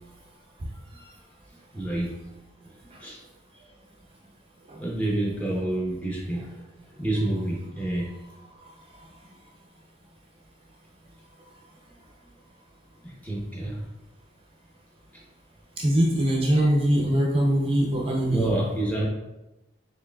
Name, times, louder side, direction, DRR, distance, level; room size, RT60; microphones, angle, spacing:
voice 1, 1.7-2.1 3.0-3.2 4.8-6.6 6.9-8.1 13.0-13.8 18.3-19.1, right 1 dB, 10° left, -3 dB, 0.7 m, -28 dB
voice 2, 15.8-18.5, right 1 dB, 30° right, -2 dB, 0.4 m, -22 dB
4.6 x 3.2 x 2.2 m, 0.97 s
head